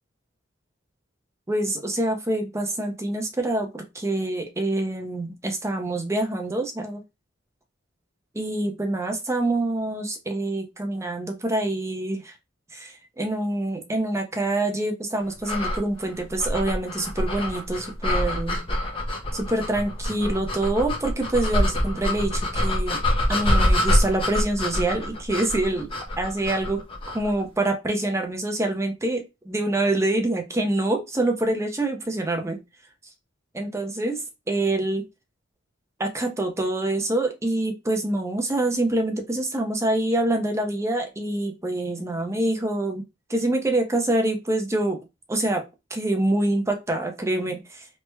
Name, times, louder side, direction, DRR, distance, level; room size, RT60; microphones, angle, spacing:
voice 1, 1.5-7.0 8.3-12.3 12.7-18.6 19.3-23.0 23.3-25.9 26.2-26.8 27.1-32.6 33.6-35.1 36.0-43.0 43.3-45.0 45.3-47.9, right 2 dB, 15° right, 4 dB, 0.5 m, -26 dB
sound 1, 15.4-27.3, left 1 dB, 25° left, 0.6 m, -25 dB
3.2 x 2.1 x 3.2 m, 0.24 s
head